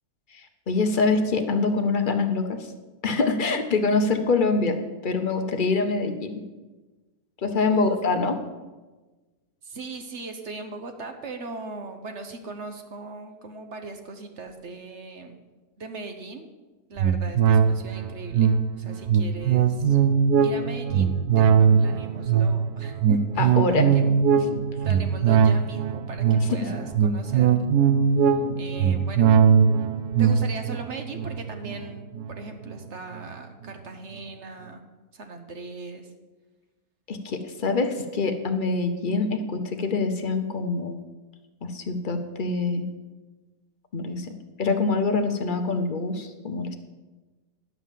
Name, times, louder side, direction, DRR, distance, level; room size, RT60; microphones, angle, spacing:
voice 1, 0.3-2.6 3.0-4.8 5.0-6.3 7.4-8.3 23.4-23.9 26.5-26.6 37.1-41.0 41.6-42.9 43.9-44.3 44.6-46.8, left 3 dB, 45° left, 6 dB, 0.7 m, -25 dB
voice 2, 7.7-8.0 9.6-15.4 15.8-16.5 16.9-20.0 20.4-24.0 24.8-27.5 28.6-29.3 30.2-34.8 35.1-36.1, right 3 dB, 50° right, 6 dB, 1.1 m, -39 dB
sound 1, 17.0-32.7 33.1-33.2, right 7 dB, 80° right, 1.2 m, -21 dB
11.0 x 5.8 x 7.3 m, 1.2 s
omnidirectional pair, 1.7 m